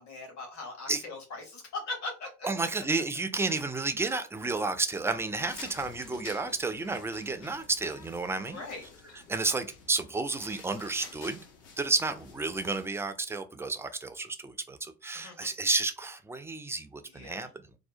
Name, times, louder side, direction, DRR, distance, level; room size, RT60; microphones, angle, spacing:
voice 1, 0.0-2.3 8.5-8.8 15.1-15.5 17.1-17.5, left 3 dB, 50° left, 1.2 m, -40 dB
voice 2, 2.4-8.6 9.3-11.4 11.8-17.5, right 3 dB, 10° right, 0.3 m, -31 dB
sound 1, 5.4-12.9, left 5 dB, 70° left, 0.8 m, -50 dB
2.7 x 2.1 x 2.5 m
hypercardioid pair, 55°, 34 cm